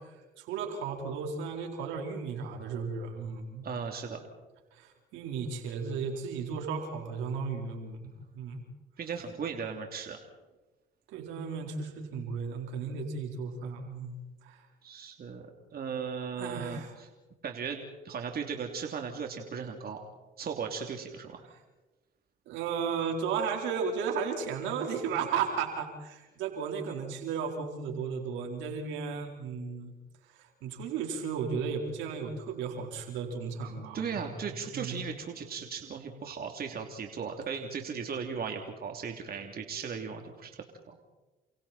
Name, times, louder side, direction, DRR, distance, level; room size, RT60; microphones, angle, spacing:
voice 1, 0.4-3.6 4.7-8.1 8.3-8.6 11.1-14.6 16.4-16.9 22.5-29.9 30.3-34.3 34.7-35.0, right 6 dB, 80° right, 2 dB, 4.4 m, -34 dB
voice 2, 3.6-4.2 9.0-10.2 14.8-17.1 17.4-20.0 20.4-21.4 33.9-40.5 40.9-41.0, right 6 dB, 55° right, 3 dB, 3.2 m, -37 dB
30.0 x 27.0 x 4.4 m, 1.1 s
supercardioid pair, 65°, 19 cm